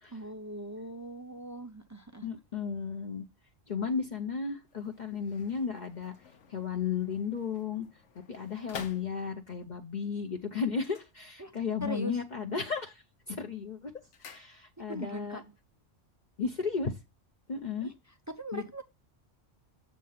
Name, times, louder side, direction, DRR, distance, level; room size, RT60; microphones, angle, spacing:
voice 1, 0.1-2.3 11.4-11.5 11.8-12.2 14.8-15.4 17.8-18.8, right 1 dB, 30° right, 0.3 m, -40 dB
voice 2, 2.2-3.2 3.7-6.1 6.5-7.9 8.3-13.9 14.2-15.4 16.4-17.0 17.5-17.9 18.5-18.6, left 5 dB, 45° left, 0.8 m, -34 dB
sound 1, 4.6-9.7 10.7-11.8 12.1-12.6 13.0-15.1 15.3-15.4, left 7 dB, 80° left, 1.2 m, -50 dB
7.5 x 3.7 x 5.6 m
omnidirectional pair, 1.2 m